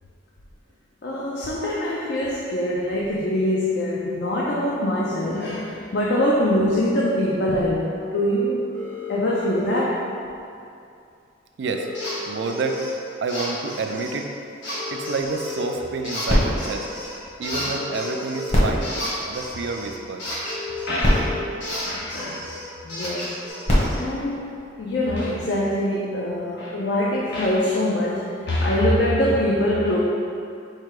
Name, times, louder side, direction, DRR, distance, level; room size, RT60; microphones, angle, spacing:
voice 1, 1.0-8.6 9.1-10.1 17.6-17.7 19.2-19.3 20.9-21.4 21.8-22.5 22.8-23.4 23.9-30.0, left 1 dB, 60° left, -5 dB, 0.4 m, -24 dB
sound 1, 8.7-9.7 11.7-12.7 14.7-15.7 17.7-18.7 19.3-19.4 20.4-21.4 23.4-23.5, left 4 dB, 10° left, 0.6 m, -34 dB
sound 2, 11.9-12.2 12.4-12.9 13.3-14.2 14.6-15.6 16.0-17.2 17.4-21.2 21.6-24.0, left 1 dB, 75° left, 1.3 m, -33 dB
voice 2, 12.3-12.8 13.2-14.3 14.9-16.9 17.4-18.9 19.3-20.2, right 4 dB, 65° right, 4 dB, 0.3 m, -28 dB
sound 3, 16.3-17.9 18.4-20.1 20.7-20.8 21.0-22.6 23.4-25.2 25.9-26.0, equal, 35° left, 1.0 m, -25 dB
4.4 x 2.2 x 4.7 m, 2.5 s
head